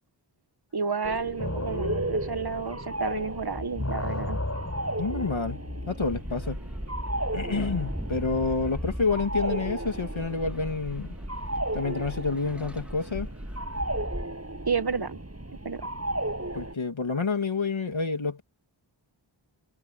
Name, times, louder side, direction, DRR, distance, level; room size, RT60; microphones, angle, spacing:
voice 1, 0.7-4.4 14.7-15.2 15.6-15.8, right 5 dB, 50° right, 1.4 m, -30 dB
sound 1, 1.0-16.7, right 1 dB, 30° right, 7.5 m, -35 dB
sound 2, 1.4-3.3 3.5-6.5, left 1 dB, 30° left, 6.5 m, -34 dB
voice 2, 5.0-6.6 7.3-11.1 11.7-13.3 16.5-18.4, left 4 dB, 75° left, 2.5 m, -29 dB
sound 3, 6.0-14.3, equal, 5° right, 2.5 m, -37 dB
wide cardioid pair, 40°, 47 cm